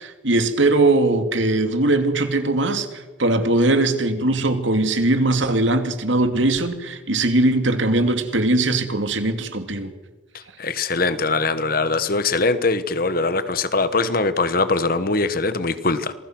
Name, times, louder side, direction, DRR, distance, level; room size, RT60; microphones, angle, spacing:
voice 1, 0.0-9.9, right 2 dB, 70° right, 8 dB, 2.5 m, -20 dB
voice 2, 10.3-16.1, left 3 dB, 45° left, 13 dB, 1.3 m, -22 dB
27.5 x 21.5 x 6.1 m, 1.2 s
head